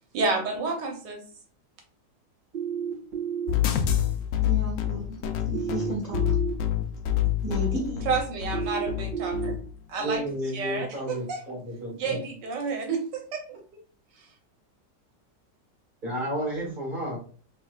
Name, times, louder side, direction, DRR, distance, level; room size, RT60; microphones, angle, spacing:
voice 1, 0.1-1.2 8.1-9.5 9.9-10.2 10.5-11.4 11.9-13.8 14.2-14.3, right 4 dB, 80° right, 3 dB, 1.4 m, -30 dB
sound 1, 2.5-3.5 5.5-6.5 8.5-9.5, right 8 dB, 55° right, 2.2 m, -31 dB
sound 2, 3.5-9.6, left 11 dB, 75° left, 0.7 m, -27 dB
voice 2, 4.4-5.2 5.4-6.4 7.4-8.1, right 1 dB, 35° left, -4 dB, 1.2 m, -33 dB
voice 3, 10.0-12.2 16.0-17.2, equal, 30° right, -5 dB, 2.3 m, -32 dB
4.1 x 3.4 x 2.3 m, 0.42 s
omnidirectional pair, 1.9 m